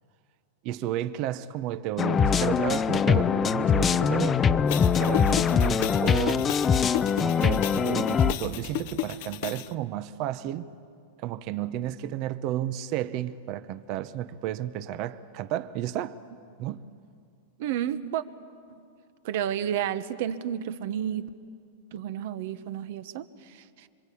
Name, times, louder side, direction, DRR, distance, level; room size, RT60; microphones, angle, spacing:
voice 1, 0.6-4.4 5.0-6.5 7.2-10.7 11.2-16.2 16.6-16.8, right 12 dB, 45° right, 0.8 m, -32 dB
sound 1, 2.0-8.3, left 6 dB, 20° left, 0.6 m, -23 dB
sound 2, 4.7-9.7, left 14 dB, 55° left, 0.7 m, -34 dB
voice 2, 17.6-18.2 18.7-18.8 19.2-21.3 21.9-23.9, right 10 dB, 60° right, 1.1 m, -31 dB
26.5 x 24.5 x 8.5 m
supercardioid pair, 145°, 0 cm